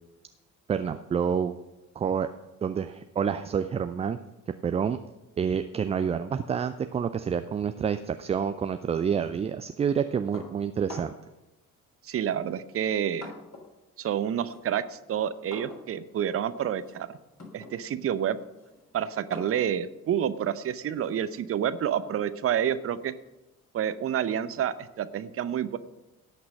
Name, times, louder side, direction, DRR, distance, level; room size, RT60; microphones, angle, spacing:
voice 1, 0.7-1.6 2.0-2.3 2.6-4.2 4.6-5.0 5.4-11.1, right 7 dB, 15° right, 10 dB, 0.3 m, -28 dB
sound 1, 10.3-11.4 12.3-13.8 14.1-21.4, left 3 dB, 35° left, 3.3 m, -47 dB
voice 2, 12.0-13.3 14.0-17.1 17.5-18.4 18.9-23.1 23.7-25.8, right 9 dB, 30° right, 14 dB, 0.7 m, -29 dB
17.0 x 6.1 x 6.3 m, 1.0 s
figure-of-eight pair, 45°, 45 cm